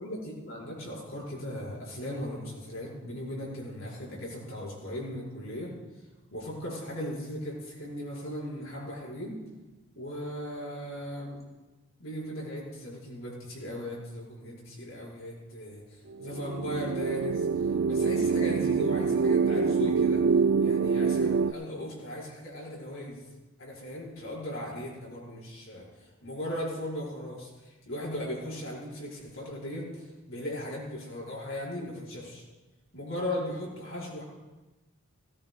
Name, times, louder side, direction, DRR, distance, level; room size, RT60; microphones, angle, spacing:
voice 1, 0.0-5.7 6.3-9.4 10.0-11.4 12.0-17.5 17.9-20.2 20.6-23.2 23.6-25.9 26.2-32.4 32.9-34.2, equal, 65° left, -5 dB, 5.7 m, -37 dB
sound 1, 16.2-21.5, right 5 dB, 60° right, 0.3 m, -25 dB
18.5 x 17.0 x 2.4 m, 1.1 s
head